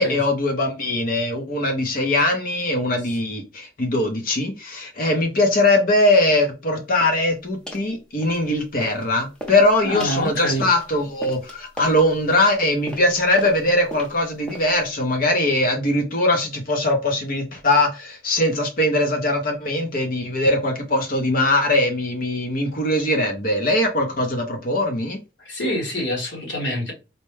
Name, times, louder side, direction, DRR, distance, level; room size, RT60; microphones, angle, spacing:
voice 1, 0.0-25.2, left 1 dB, 50° left, 0.7 m, -21 dB
sound 1, 7.0-7.2 7.7-7.9 8.2-9.1 9.3-14.9, equal, 5° left, 0.7 m, -38 dB
voice 2, 9.8-10.6 25.4-26.9, equal, 75° left, 1.5 m, -26 dB
4.2 x 2.2 x 3.2 m
head